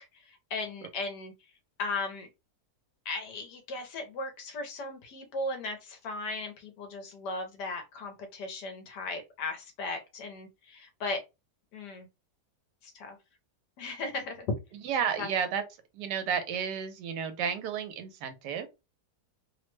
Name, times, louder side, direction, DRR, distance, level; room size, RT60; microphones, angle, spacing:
voice 1, 0.0-1.3 1.8-2.3 3.0-11.2 11.7-12.1 12.8-13.2 13.8-14.6 15.2-15.3, left 3 dB, 80° left, 1.3 m, -36 dB
voice 2, 14.8-15.6 15.9-18.7, right 7 dB, 85° right, 1.2 m, -32 dB
3.1 x 2.1 x 3.1 m
omnidirectional pair, 1.8 m